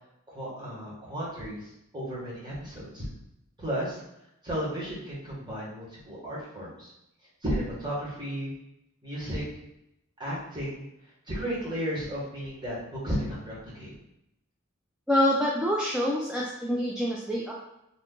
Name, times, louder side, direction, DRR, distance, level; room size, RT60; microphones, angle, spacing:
voice 1, 0.3-3.0 3.6-4.0 4.4-6.9 7.4-8.5 9.0-9.4 10.2-10.8 11.3-13.9, equal, 20° right, -8 dB, 1.2 m, -34 dB
voice 2, 15.1-17.5, equal, 5° right, -5 dB, 0.3 m, -26 dB
2.7 x 2.4 x 3.6 m, 0.84 s
head